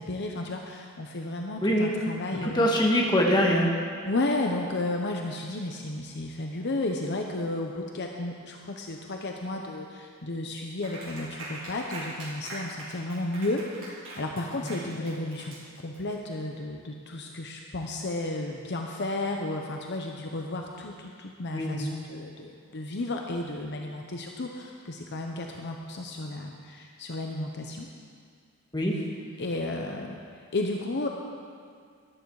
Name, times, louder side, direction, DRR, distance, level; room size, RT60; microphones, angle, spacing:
voice 1, 0.0-2.7 4.1-27.9 29.4-30.2 30.5-31.1, left 2 dB, 55° left, 2 dB, 0.9 m, -33 dB
voice 2, 1.6-1.9 2.4-3.7 14.6-14.7 21.5-21.8 28.7-28.9, equal, 20° left, -1 dB, 1.7 m, -23 dB
Clapping, 10.8-16.1, right 2 dB, 65° right, 4.2 m, -42 dB
13.5 x 12.0 x 4.8 m, 2.1 s
head